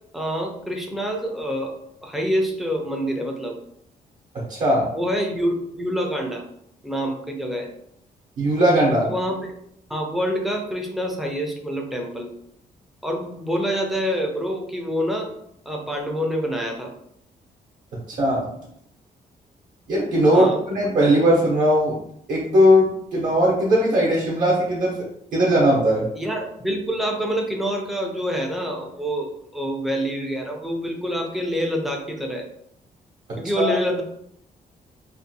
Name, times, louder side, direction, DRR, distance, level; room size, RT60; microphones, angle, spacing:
voice 1, 0.1-3.6 4.9-6.4 6.8-7.7 9.0-9.4 9.9-12.3 13.0-15.3 15.7-16.9 20.3-20.6 26.1-32.5 33.4-34.0, equal, ahead, 1 dB, 0.3 m, -26 dB
voice 2, 4.3-4.9 8.4-9.1 18.1-18.5 19.9-22.0 22.3-24.9 25.3-26.0 33.6-33.8, equal, 55° right, -4 dB, 0.7 m, -19 dB
2.5 x 2.1 x 2.6 m, 0.72 s
cardioid pair, 165°, 15 cm